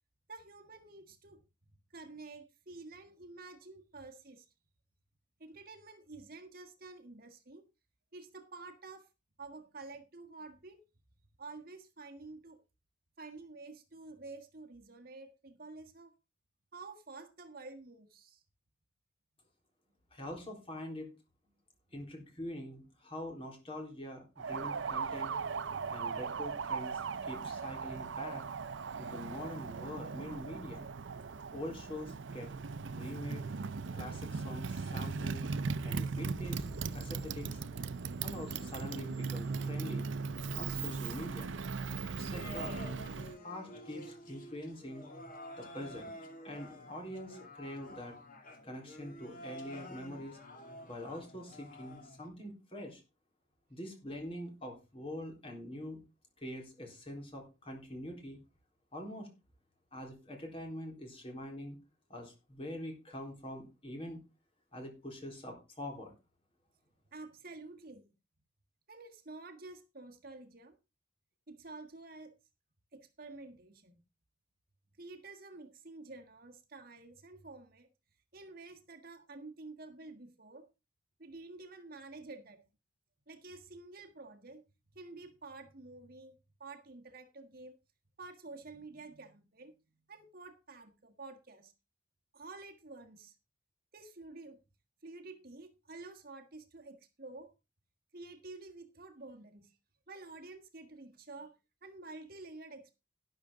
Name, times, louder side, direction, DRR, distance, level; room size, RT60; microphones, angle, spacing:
voice 1, 0.3-1.4 1.9-4.5 5.4-7.6 8.1-9.1 9.4-10.8 11.4-12.6 13.2-16.1 16.7-18.4 67.1-68.1 68.9-70.8 71.5-72.4 72.9-74.0 75.0-77.9 78.3-80.7 81.2-82.6 83.3-84.6 84.9-87.8 88.2-89.8 90.1-91.7 92.3-93.3 93.9-94.6 95.0-97.5 98.1-99.8 100.1-101.5 101.8-102.9, right 3 dB, 50° right, 1.5 m, -50 dB
voice 2, 20.1-21.1 21.9-25.3 25.9-28.4 29.0-30.8 31.5-32.5 32.9-33.4 33.9-35.4 35.8-36.6 36.9-37.6 38.2-40.1 40.6-41.5 42.2-42.8 43.4-45.1 45.6-46.1 46.4-48.2 48.6-50.4 50.9-53.0 53.7-56.0 56.4-58.4 58.9-59.3 59.9-61.8 62.1-64.2 64.7-66.1, left 1 dB, 30° left, 3.8 m, -44 dB
Motorcycle, 24.4-43.4, right 5 dB, 70° right, 0.6 m, -38 dB
sound 1, 36.4-41.8, equal, 10° right, 5.0 m, -55 dB
sound 2, 42.3-52.3, left 1 dB, 45° left, 2.5 m, -49 dB
12.0 x 11.0 x 3.7 m
head